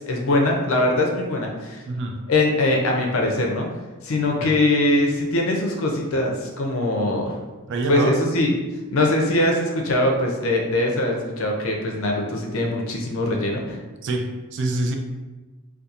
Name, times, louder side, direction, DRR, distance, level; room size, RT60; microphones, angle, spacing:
voice 1, 0.1-1.8 2.3-3.7 4.0-7.4 7.9-8.5 8.9-13.8, left 1 dB, 70° left, 1 dB, 0.5 m, -22 dB
voice 2, 1.9-2.2 4.4-4.5 7.7-8.1 14.0-15.0, right 2 dB, 55° right, 4 dB, 0.3 m, -26 dB
2.7 x 2.2 x 2.4 m, 1.2 s
head